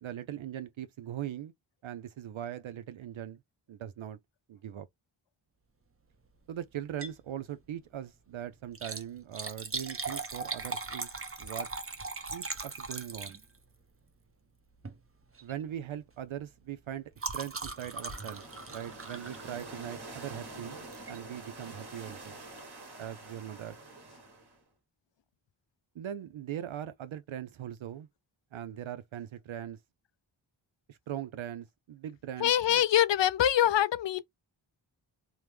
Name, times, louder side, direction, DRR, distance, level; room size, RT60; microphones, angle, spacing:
voice 1, 0.0-1.5 1.8-3.4 3.7-4.2 4.5-4.9 6.5-11.1 11.4-11.7 12.3-13.4 15.4-18.4 18.7-20.8 21.1-22.4 23.0-23.8 25.9-28.1 28.5-29.8 30.9-32.8, right 10 dB, 70° right, 0.5 m, -40 dB
Liquid, 6.8-7.2 7.6-7.7 8.6-13.7 14.7-15.0 15.3-15.6 15.9-20.0 20.9-21.2 21.7-21.8 22.0-22.1, right 4 dB, 25° right, 0.8 m, -39 dB
sound 1, 17.5-24.6, right 2 dB, 50° right, 1.4 m, -47 dB
voice 2, 32.4-34.2, left 11 dB, 60° left, 0.5 m, -24 dB
3.0 x 2.0 x 3.3 m
cardioid pair, 40°, 49 cm